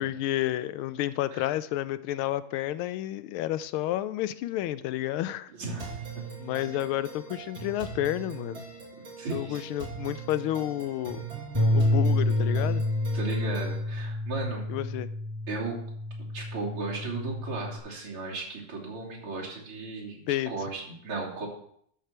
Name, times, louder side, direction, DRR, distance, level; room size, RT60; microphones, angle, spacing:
voice 1, 0.0-5.5 6.4-8.6 9.3-11.3 11.7-12.8 14.7-15.1 20.3-20.5, left 13 dB, 85° left, 14 dB, 1.4 m, -30 dB
voice 2, 5.6-6.2 9.2-9.6 13.1-14.7 15.5-15.8 16.3-20.2 20.5-21.5, right 3 dB, 85° right, -5 dB, 3.9 m, -35 dB
sound 1, 5.8-13.8, right 5 dB, 70° right, 3.4 m, -41 dB
Bass guitar, 11.5-17.8, left 1 dB, 15° right, 2.1 m, -28 dB
12.5 x 6.7 x 4.3 m, 0.67 s
omnidirectional pair, 2.3 m